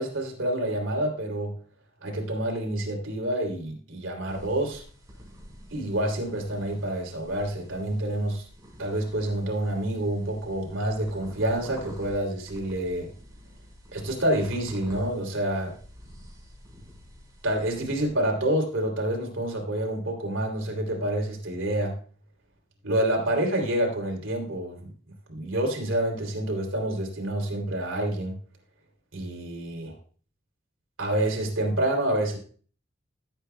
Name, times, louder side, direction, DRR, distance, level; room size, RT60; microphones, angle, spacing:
voice 1, 0.0-1.5 2.0-4.8 5.7-8.5 8.8-13.1 13.9-15.8 17.4-21.9 22.8-24.9 25.3-28.4 29.1-30.0 31.0-32.4, right 1 dB, 85° right, 2 dB, 3.0 m, -28 dB
sound 1, 4.3-18.1, equal, 15° right, 4.5 m, -48 dB
15.5 x 8.1 x 2.2 m, 0.42 s
head